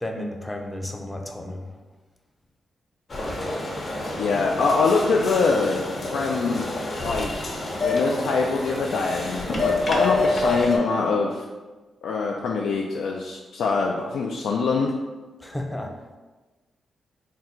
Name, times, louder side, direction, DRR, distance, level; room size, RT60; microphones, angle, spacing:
voice 1, 0.0-1.7 15.4-15.9, left 1 dB, 10° left, 3 dB, 0.5 m, -32 dB
sound 1, 3.1-10.8, left 2 dB, 40° left, 0.8 m, -27 dB
voice 2, 4.2-5.8 6.1-6.7 7.0-11.4 12.0-14.9, left 4 dB, 90° left, 0 dB, 0.3 m, -24 dB
3.7 x 2.3 x 4.3 m, 1.3 s
cardioid pair, 115°, 0 cm